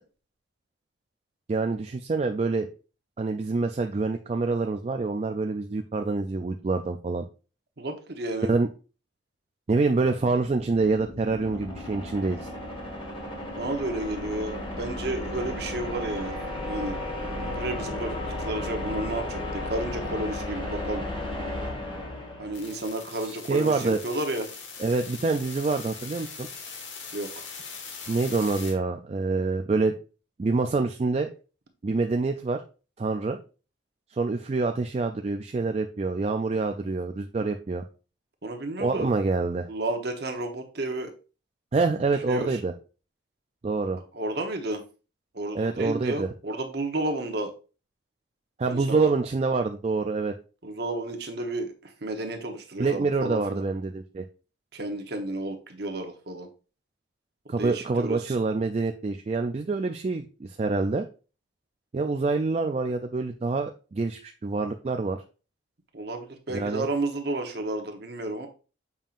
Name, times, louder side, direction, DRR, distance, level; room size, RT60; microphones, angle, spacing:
voice 1, 1.5-2.7 3.2-7.2 8.5-8.7 9.7-12.5 23.2-24.0 24.8-26.5 28.1-29.9 30.4-31.3 31.8-32.6 33.0-33.4 34.1-37.8 38.8-39.7 41.7-42.7 43.6-44.0 45.5-46.3 48.6-50.3 52.8-54.2 57.5-61.1 61.9-65.2 66.5-66.9, right 3 dB, 35° right, 5 dB, 0.3 m, -26 dB
voice 2, 7.8-8.5 13.6-16.3 16.6-17.0 17.4-21.1 22.4-24.5 27.1-27.4 37.4-37.5 38.4-39.1 39.7-41.1 42.3-42.6 44.1-44.8 45.3-47.5 48.7-49.1 50.6-53.6 54.7-56.5 57.6-58.2 65.9-68.5, right 2 dB, 55° right, 5 dB, 1.0 m, -32 dB
sound 1, 10.2-23.0, left 1 dB, 25° left, 1.3 m, -34 dB
sound 2, 22.5-28.7, left 5 dB, 75° left, 1.4 m, -41 dB
7.2 x 5.4 x 2.5 m, 0.34 s
head